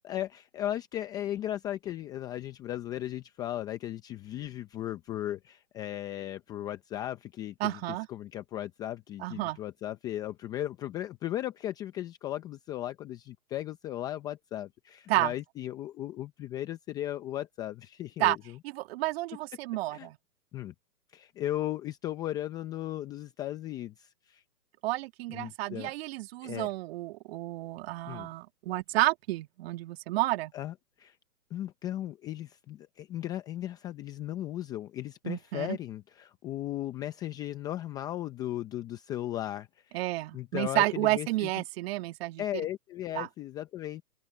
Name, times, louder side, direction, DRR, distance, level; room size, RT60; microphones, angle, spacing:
voice 1, 0.0-7.8 8.1-18.4 19.9-20.1 20.5-20.7 21.1-24.4 25.3-25.9 26.4-26.7 28.0-28.3 30.5-31.2 31.5-40.0 40.3-41.5 42.4-44.0, left 13 dB, 10° left, 0.5 m, -36 dB
voice 2, 7.6-8.1 9.2-9.6 15.1-15.3 18.2-18.4 18.6-20.2 24.8-30.5 35.2-35.8 39.9-42.4 43.1-43.3, right 18 dB, 40° right, 1.7 m, -30 dB
open air
hypercardioid pair, 135°, 47 cm